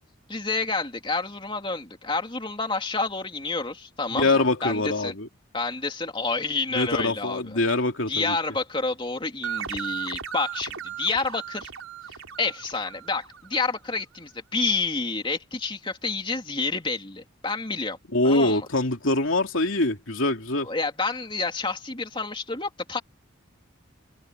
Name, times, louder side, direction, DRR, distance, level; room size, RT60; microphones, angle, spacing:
voice 1, 0.3-5.1 5.5-7.6 8.1-11.7 12.4-18.0 18.2-18.7 20.6-23.0, left 3 dB, 25° left, 3.1 m, -29 dB
voice 2, 4.2-5.3 6.7-8.4 18.1-20.7, left 2 dB, 70° left, 2.8 m, -24 dB
sound 1, 9.4-13.8, right 9 dB, 85° right, 3.7 m, -36 dB
head